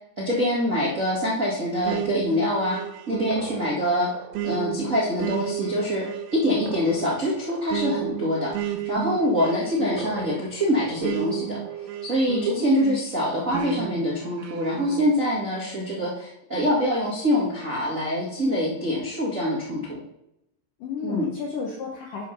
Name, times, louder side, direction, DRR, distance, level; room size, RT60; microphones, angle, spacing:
voice 1, 0.2-2.8 3.1-4.1 4.4-6.0 6.3-11.6 12.0-20.0 21.0-21.3, equal, 45° right, -6 dB, 1.0 m, -25 dB
sound 1, 1.9-12.9 13.5-15.1, right 11 dB, 80° right, 2.9 m, -33 dB
voice 2, 12.3-13.0 20.8-22.2, left 5 dB, 70° left, 0 dB, 2.0 m, -32 dB
8.2 x 4.9 x 5.9 m, 0.82 s
omnidirectional pair, 5.0 m